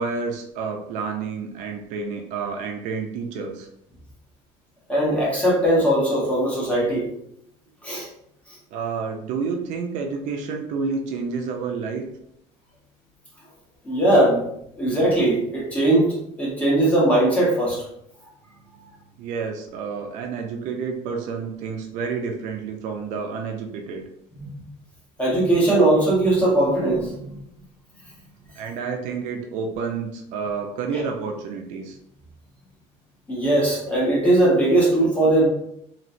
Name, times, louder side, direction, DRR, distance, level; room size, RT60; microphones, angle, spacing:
voice 1, 0.0-3.7 8.7-12.0 19.2-24.0 28.6-32.0, right 5 dB, 75° right, 3 dB, 0.5 m, -29 dB
voice 2, 4.9-7.1 7.8-8.1 13.8-14.4 14.8-17.8 24.4-24.5 25.2-27.4 33.3-35.5, right 1 dB, 10° left, -5 dB, 1.2 m, -19 dB
3.1 x 2.9 x 2.6 m, 0.74 s
cardioid pair, 160°, 13 cm